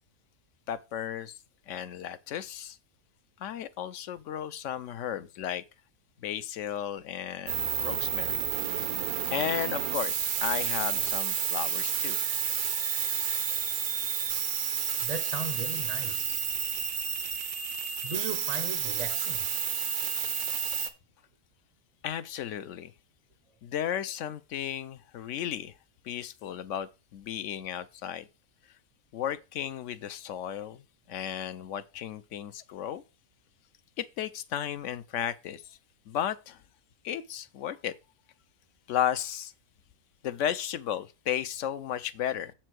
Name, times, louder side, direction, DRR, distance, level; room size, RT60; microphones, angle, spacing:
voice 1, 0.7-1.4 1.7-2.8 3.4-5.6 6.2-8.4 9.3-12.2 22.0-22.9 23.6-25.7 26.0-28.3 29.1-30.8 31.1-33.0 34.0-35.8 36.1-36.6 37.0-37.9 38.9-39.5 40.2-42.5, left 10 dB, 65° left, 0.9 m, -34 dB
sound 1, 7.5-20.9, right 8 dB, 85° right, 1.3 m, -30 dB
voice 2, 15.0-16.4 18.0-19.5, right 4 dB, 40° right, 0.6 m, -37 dB
7.4 x 4.5 x 6.1 m
omnidirectional pair, 1.5 m